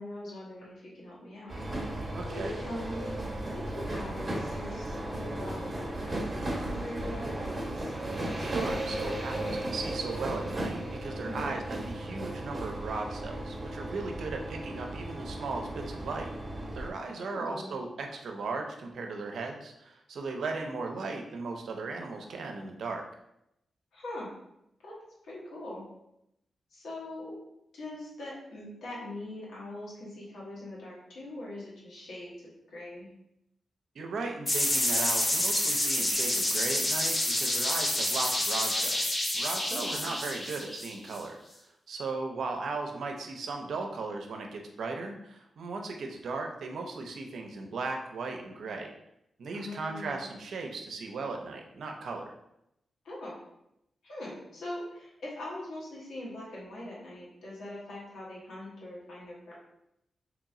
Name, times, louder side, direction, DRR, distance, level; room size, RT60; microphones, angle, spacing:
voice 1, 0.0-7.9 11.2-11.5 17.2-17.8 23.9-24.3 24.8-24.9 25.2-25.8 26.7-27.3 27.7-33.1 39.7-40.0 49.5-50.2 53.0-53.4 54.0-59.6, left 1 dB, 90° left, -6 dB, 1.5 m, -42 dB
sound 1, 1.5-16.9, right 1 dB, 35° right, 0.9 m, -35 dB
voice 2, 2.1-2.5 8.4-16.3 16.6-23.0 34.0-41.4 41.9-48.9 49.4-52.3, right 3 dB, 75° right, 3 dB, 0.6 m, -37 dB
sound 2, 34.5-41.2, left 1 dB, 30° left, 1.0 m, -28 dB
3.0 x 3.0 x 3.7 m, 0.82 s
cardioid pair, 70°, 0 cm